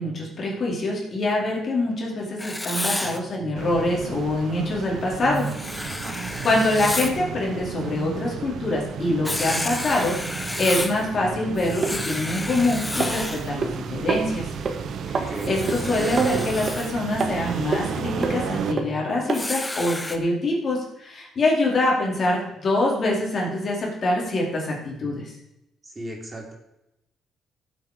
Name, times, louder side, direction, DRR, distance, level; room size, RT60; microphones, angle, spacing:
voice 1, 0.0-5.5 6.4-14.5 15.0-25.3, left 2 dB, 45° left, -2 dB, 4.2 m, -25 dB
Writing, 2.4-3.2 5.3-7.2 9.2-11.0 11.6-13.5 15.3-16.9 19.3-20.2, left 1 dB, 10° left, 1.2 m, -31 dB
sound 1, 3.5-18.7, right 6 dB, 65° right, 1.1 m, -33 dB
voice 2, 5.9-6.2 15.1-15.6 25.8-26.5, right 1 dB, 20° right, -1 dB, 3.4 m, -36 dB
sound 2, 11.8-11.9 13.0-13.7 14.1-14.3 14.7-14.8 15.1-15.3 15.7-15.8 16.2-16.8 17.2-17.3 17.7-17.8 18.2-18.4 18.8-18.9 19.3-19.4 20.0-20.1, right 4 dB, 45° right, 2.0 m, -25 dB
15.0 x 8.1 x 5.1 m, 0.89 s
cardioid pair, 90°, 0 cm